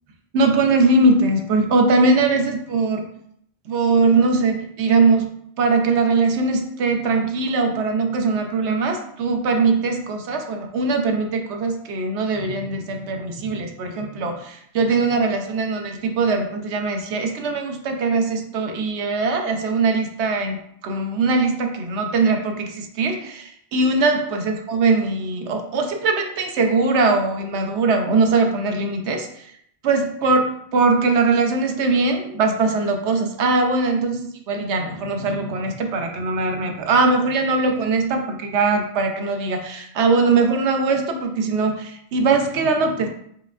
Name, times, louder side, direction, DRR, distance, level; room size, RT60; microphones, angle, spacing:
voice 1, 0.3-3.1 3.7-5.3 5.6-29.5 29.8-43.1, right 3 dB, 90° right, 4 dB, 1.0 m, -21 dB
5.0 x 3.2 x 2.4 m, 0.69 s
omnidirectional pair, 1.1 m